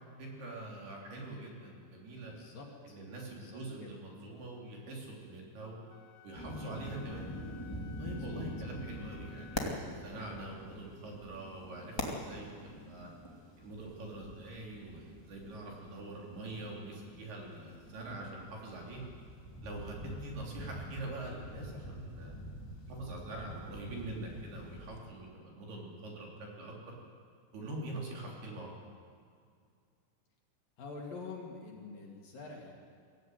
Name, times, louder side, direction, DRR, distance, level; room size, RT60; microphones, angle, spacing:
voice 1, 0.2-2.3 2.8-5.8 6.2-7.3 8.0-12.5 12.8-13.1 13.6-19.0 19.6-22.3 22.9-26.3 26.6-26.7 27.5-28.7, right 2 dB, 55° right, -2 dB, 5.1 m, -44 dB
voice 2, 2.2-3.0 3.3-4.0 8.1-8.5 30.8-32.8, left 4 dB, 55° left, -1 dB, 3.5 m, -47 dB
Wind instrument woodwind instrument, 5.9-10.0, left 10 dB, 90° left, 3.6 m, -57 dB
sound 1, 6.3-25.0, left 1 dB, 25° left, 0.5 m, -45 dB
23.5 x 16.0 x 9.3 m, 2.2 s
omnidirectional pair, 5.6 m